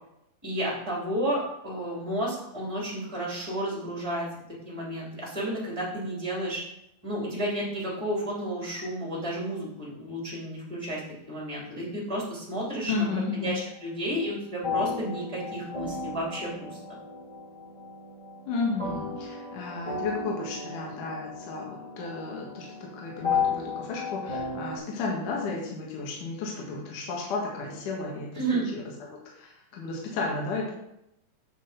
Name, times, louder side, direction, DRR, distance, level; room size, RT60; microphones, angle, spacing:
voice 1, 0.4-4.3 4.6-6.6 7.0-11.0 11.3-13.1 13.3-17.0 28.3-28.7, right 1 dB, 10° right, -5 dB, 2.6 m, -32 dB
voice 2, 12.9-13.6 18.5-28.4 28.7-28.8 29.1-30.7, left 3 dB, 65° left, -2 dB, 2.9 m, -33 dB
sound 1, 14.6-24.8, left 5 dB, 15° left, 1.7 m, -34 dB
8.9 x 5.2 x 5.1 m, 0.81 s
omnidirectional pair, 4.1 m